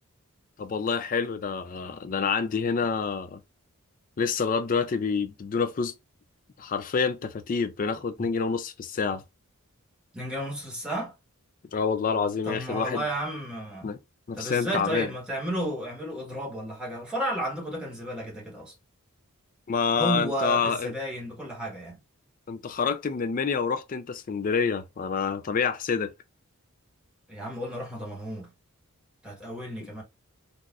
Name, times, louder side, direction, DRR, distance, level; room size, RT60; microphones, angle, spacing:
voice 1, 0.6-3.4 4.2-5.9 6.6-9.2 11.7-13.0 13.8-14.0 14.3-15.1 19.7-20.9 22.5-26.1, left 5 dB, 40° left, 0.4 m, -27 dB
voice 2, 10.1-11.1 12.4-13.9 14.3-18.7 19.9-22.0 27.3-28.5 29.2-30.0, right 1 dB, 5° right, 1.3 m, -32 dB
3.9 x 2.4 x 2.4 m
head